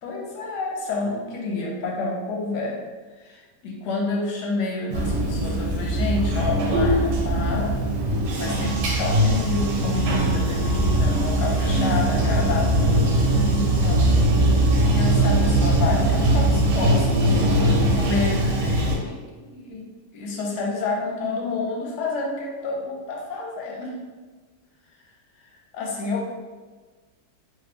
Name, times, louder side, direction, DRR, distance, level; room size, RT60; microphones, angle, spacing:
voice 1, 0.0-2.8 3.2-7.7 8.1-14.0 14.4-23.9 25.7-26.3, left 3 dB, 75° left, -1 dB, 1.2 m, -29 dB
Bathtub (filling or washing), 4.9-19.0, right 1 dB, 85° right, 1.3 m, -21 dB
3.3 x 3.0 x 2.5 m, 1.3 s
omnidirectional pair, 1.8 m